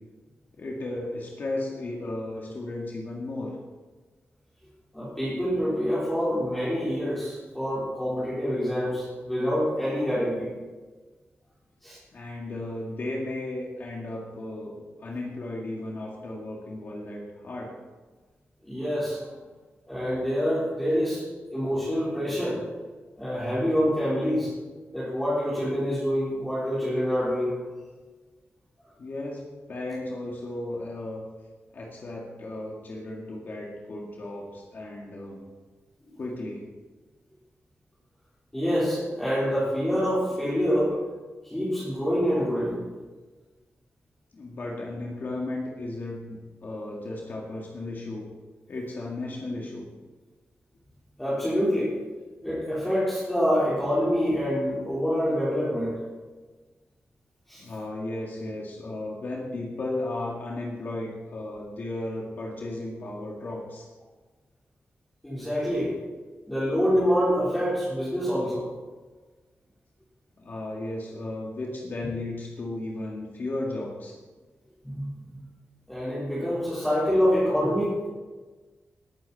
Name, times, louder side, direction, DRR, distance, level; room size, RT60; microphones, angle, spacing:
voice 1, 0.6-3.6 12.1-17.7 29.0-29.4 29.7-31.2 31.7-35.4 36.2-36.6 44.3-48.2 48.7-49.8 57.6-63.9 70.4-74.2, left 2 dB, 50° left, -2 dB, 2.0 m, -35 dB
voice 2, 4.9-10.5 11.8-12.0 18.6-19.2 19.9-21.2 21.5-22.6 23.2-24.5 24.9-27.5 36.1-36.2 38.5-41.0 41.4-42.8 51.2-51.9 52.4-56.0 57.5-57.6 65.2-65.9 66.5-68.7 74.8-75.3 75.9-78.1, equal, 5° left, -11 dB, 3.9 m, -26 dB
20.0 x 9.1 x 4.2 m, 1.3 s
wide cardioid pair, 175°, 4 cm